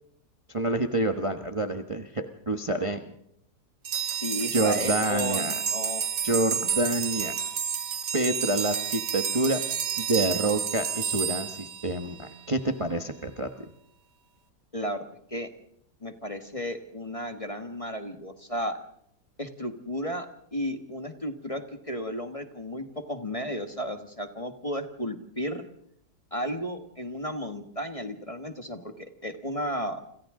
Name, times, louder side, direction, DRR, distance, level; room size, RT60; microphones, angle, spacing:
voice 1, 0.5-3.0 4.5-5.6 6.2-7.3 8.1-9.6 10.0-13.5, right 2 dB, 20° right, 6 dB, 1.1 m, -27 dB
sound 1, 3.8-12.4, right 8 dB, 90° right, 2.0 m, -30 dB
voice 2, 4.2-6.0 14.7-15.0 15.3-15.5 16.0-18.8 19.4-25.7 26.3-28.9 29.2-30.0, equal, 20° left, 6 dB, 1.5 m, -33 dB
29.5 x 26.5 x 3.8 m, 0.72 s
omnidirectional pair, 1.7 m